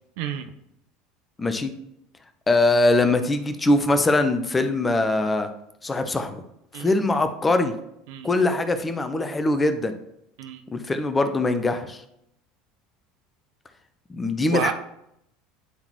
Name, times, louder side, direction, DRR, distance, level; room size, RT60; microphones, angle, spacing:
voice 1, 0.2-0.5 6.7-6.9 8.1-8.3 10.4-10.6 14.5-14.7, right 9 dB, 65° right, 8 dB, 0.6 m, -30 dB
voice 2, 1.4-1.7 2.5-5.5 5.8-6.4 6.8-7.7 8.2-9.9 10.7-12.0 14.1-14.7, left 2 dB, 20° left, 8 dB, 0.7 m, -22 dB
9.6 x 3.9 x 2.9 m, 0.79 s
figure-of-eight pair, 70°, 0 cm